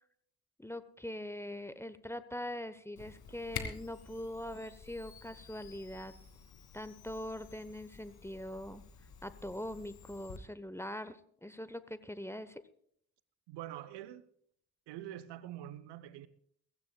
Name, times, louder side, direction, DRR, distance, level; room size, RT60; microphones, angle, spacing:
voice 1, 0.6-6.1 6.7-8.8 9.2-12.6, left 1 dB, 5° left, 1.0 m, -42 dB
Camera, 3.0-10.4, left 6 dB, 50° left, 2.5 m, -49 dB
voice 2, 13.5-14.2 14.9-16.3, right 12 dB, 60° right, 0.9 m, -45 dB
23.0 x 15.0 x 2.3 m
figure-of-eight pair, 40°, 47 cm